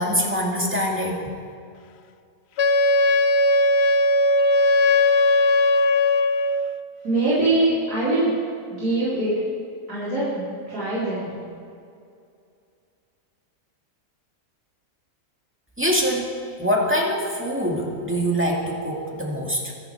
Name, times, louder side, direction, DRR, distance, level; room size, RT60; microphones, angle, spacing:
voice 1, 0.0-1.4 15.8-16.3 16.6-19.7, equal, 10° right, -2 dB, 2.1 m, -24 dB
Wind instrument woodwind instrument, 2.6-6.7, left 2 dB, 65° left, 0.6 m, -18 dB
voice 2, 7.0-8.3 8.8-9.3 9.9-11.3, right 2 dB, 80° right, -11 dB, 4.5 m, -23 dB
24.0 x 10.5 x 4.6 m, 2.4 s
omnidirectional pair, 1.6 m